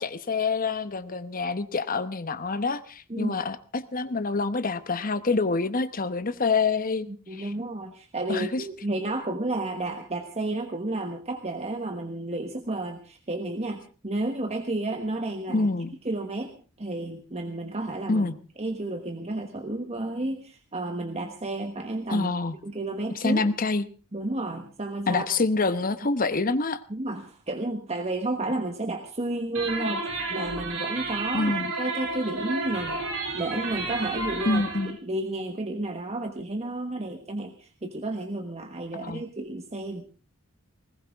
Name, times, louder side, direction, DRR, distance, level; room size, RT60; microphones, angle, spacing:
voice 1, 0.0-7.5 8.3-8.6 15.5-15.9 18.1-18.3 22.1-22.6 23.1-23.9 25.1-26.8 31.3-31.7 34.4-35.0 38.9-39.2, left 3 dB, 40° left, 12 dB, 1.0 m, -26 dB
voice 2, 7.1-15.7 16.0-18.3 18.6-22.3 22.6-23.4 24.1-25.2 26.9-33.0 33.3-40.0, right 2 dB, 30° right, 5 dB, 1.3 m, -32 dB
sound 1, 29.5-34.9, right 3 dB, 80° right, 7.2 m, -31 dB
20.5 x 18.5 x 3.6 m, 0.37 s
head